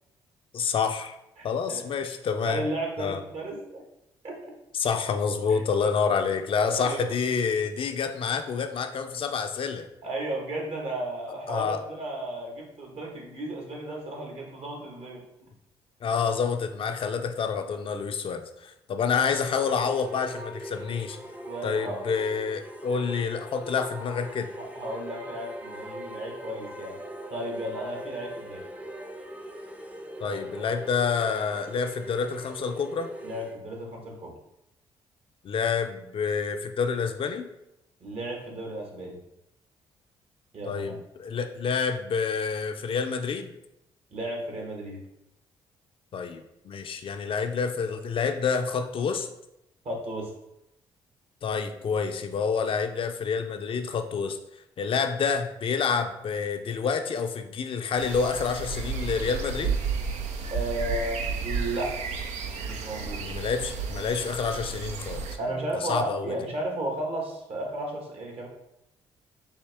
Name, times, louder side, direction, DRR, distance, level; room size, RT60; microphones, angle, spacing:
voice 1, 0.5-1.2 1.4-2.6 3.0-3.2 4.8-9.9 11.5-11.8 16.0-21.2 21.6-24.5 30.2-33.1 35.4-37.5 40.7-43.5 46.1-49.3 51.4-54.4 54.8-59.8 63.2-65.3 65.8-66.3, left 6 dB, 50° left, 6 dB, 0.4 m, -28 dB
voice 2, 1.4-1.8 2.4-3.8 4.2-4.4 5.5-5.6 6.7-7.2 10.0-15.3 16.1-16.3 21.4-22.0 24.6-27.0 27.3-28.7 30.3-30.4 33.2-34.4 38.0-39.2 40.5-41.0 44.1-45.0 49.8-50.3 60.5-62.1 62.6-63.3 65.4-68.5, right 1 dB, 60° right, 0 dB, 1.3 m, -34 dB
sound 1, 19.4-33.6, right 1 dB, 10° right, 0.5 m, -41 dB
sound 2, 58.0-65.4, right 5 dB, 80° right, 0.5 m, -32 dB
4.4 x 2.8 x 3.4 m, 0.83 s
supercardioid pair, 65°, 11 cm